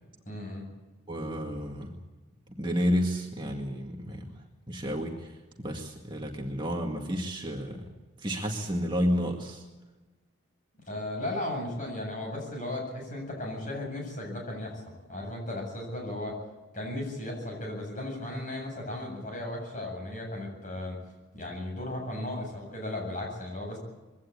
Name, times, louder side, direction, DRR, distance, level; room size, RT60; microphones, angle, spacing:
voice 1, 0.3-0.6 10.9-14.8 15.1-16.4 16.7-21.0 21.3-23.8, left 1 dB, 40° left, 1 dB, 7.9 m, -35 dB
voice 2, 1.1-2.0 2.5-4.4 4.7-7.9 8.2-9.6, equal, 20° right, 1 dB, 2.0 m, -31 dB
22.5 x 17.0 x 8.7 m, 1.2 s
head